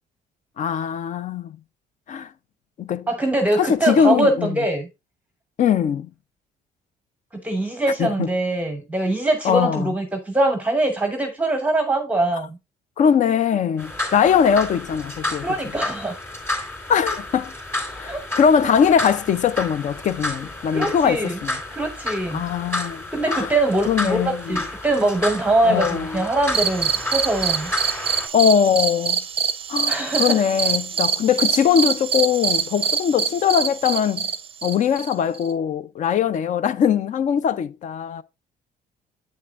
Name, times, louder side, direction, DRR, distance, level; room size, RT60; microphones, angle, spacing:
voice 1, 0.6-1.5 2.1-2.3 2.8-3.1 3.6-4.5 5.6-6.1 8.0-8.3 9.4-9.9 13.0-15.5 16.9-17.5 18.0-21.6 22.3-23.6 23.9-24.6 25.6-26.2 28.3-29.2 29.7-34.3 34.6-38.2, left 8 dB, 45° left, 0.5 m, -21 dB
voice 2, 3.1-4.9 7.3-12.6 15.4-16.2 18.1-18.2 18.6-18.7 20.7-21.4 21.7-22.4 23.1-27.7 29.9-30.4, right 2 dB, 10° right, 0.9 m, -23 dB
sound 1, 13.8-28.3, left 2 dB, 15° left, 3.2 m, -31 dB
sound 2, 26.5-35.5, right 6 dB, 35° right, 0.5 m, -24 dB
8.0 x 6.5 x 2.5 m
cardioid pair, 110°, 17 cm